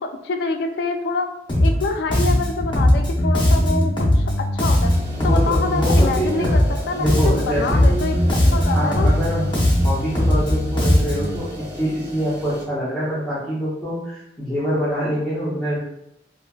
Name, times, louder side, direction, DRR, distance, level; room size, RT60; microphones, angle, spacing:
voice 1, 0.0-1.3 1.6-4.9 5.2-8.2 8.5-9.1, left 3 dB, 65° left, 5 dB, 0.3 m, -26 dB
Bass guitar, 1.5-1.9 2.1-6.8 7.1-11.4, left 1 dB, 30° left, 0.6 m, -19 dB
sound 1, 4.8-12.6, equal, 65° right, 1.1 m, -38 dB
voice 2, 5.2-6.5 6.9-8.2 8.7-9.5 9.8-15.8, equal, ahead, -12 dB, 0.9 m, -25 dB
3.2 x 2.3 x 2.2 m, 0.83 s
head